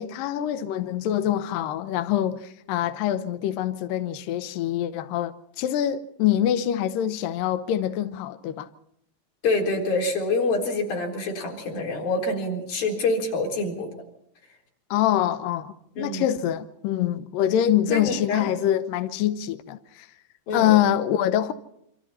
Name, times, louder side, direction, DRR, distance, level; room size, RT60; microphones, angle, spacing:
voice 1, 0.0-8.7 14.9-20.1 20.5-21.5, left 11 dB, 80° left, 2.0 m, -25 dB
voice 2, 9.4-13.9 16.0-16.3 17.9-18.5 20.5-20.8, left 2 dB, 50° left, 5.4 m, -26 dB
28.0 x 25.5 x 4.3 m
omnidirectional pair, 5.2 m